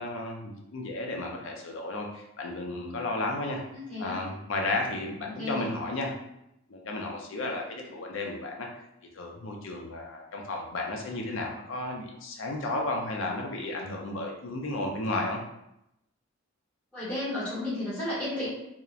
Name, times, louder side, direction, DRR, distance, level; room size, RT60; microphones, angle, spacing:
voice 1, 0.0-3.6 4.0-6.1 6.7-8.7 9.1-15.4, left 2 dB, 65° left, 1 dB, 0.5 m, -33 dB
voice 2, 3.7-4.2 5.3-5.7 16.9-18.5, left 1 dB, 5° left, -11 dB, 1.0 m, -33 dB
2.8 x 2.0 x 2.3 m, 0.82 s
head